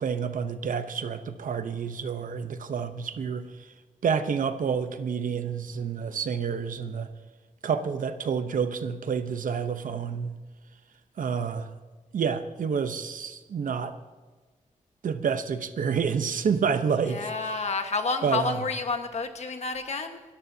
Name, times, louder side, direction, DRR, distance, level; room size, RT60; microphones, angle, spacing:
voice 1, 0.0-3.5 4.0-7.1 7.6-10.4 11.2-11.7 12.1-13.9 15.0-17.3 18.2-18.6, right 6 dB, 80° right, 10 dB, 0.9 m, -28 dB
voice 2, 17.0-20.2, left 4 dB, 55° left, 5 dB, 1.4 m, -30 dB
28.0 x 13.0 x 2.8 m, 1.4 s
wide cardioid pair, 135°, 14 cm